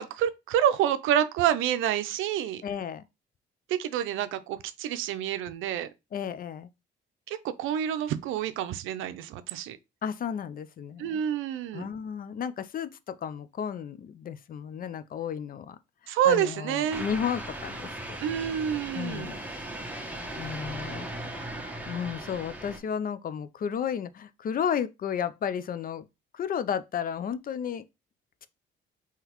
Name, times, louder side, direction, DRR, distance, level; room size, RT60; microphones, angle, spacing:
voice 1, 0.0-2.6 3.8-5.9 7.3-9.8 11.0-11.9 16.1-17.1 18.2-19.3, right 10 dB, 90° right, 0.5 m, -28 dB
voice 2, 2.6-3.0 6.1-6.7 10.0-11.2 11.7-15.8 16.0-18.2 18.9-19.4 20.4-21.1 21.9-26.1 26.3-27.8, left 8 dB, 45° left, 0.4 m, -33 dB
sound 1, 16.9-22.8, right 1 dB, 5° right, 1.0 m, -38 dB
3.8 x 2.9 x 2.9 m
cardioid pair, 90°, 20 cm